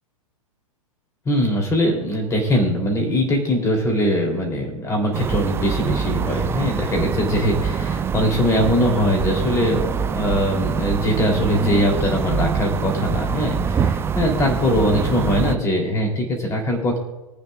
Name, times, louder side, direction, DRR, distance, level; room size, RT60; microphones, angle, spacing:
voice 1, 1.2-17.0, equal, 15° left, 1 dB, 3.4 m, -21 dB
sound 1, 5.1-15.6, right 6 dB, 15° right, 0.6 m, -24 dB
25.5 x 9.2 x 2.5 m, 1.1 s
figure-of-eight pair, 105°, 18 cm